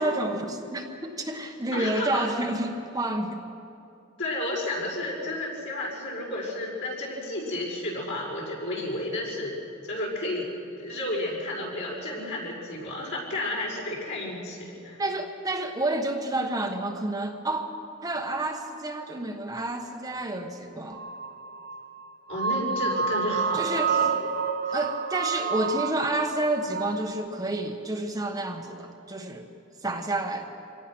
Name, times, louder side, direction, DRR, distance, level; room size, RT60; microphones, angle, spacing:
voice 1, 0.0-3.4 15.0-17.7 18.0-21.0 23.5-24.0 24.7-29.5 29.8-30.4, right 2 dB, 15° right, 3 dB, 1.1 m, -29 dB
voice 2, 1.7-2.3 4.2-9.5 9.9-10.5 10.8-15.0 22.3-24.0 24.7-24.8, left 1 dB, 60° left, -3 dB, 6.1 m, -32 dB
sound 1, 20.9-26.2 26.7-27.1, right 6 dB, 50° right, 1.2 m, -29 dB
26.0 x 18.0 x 6.2 m, 2.6 s
head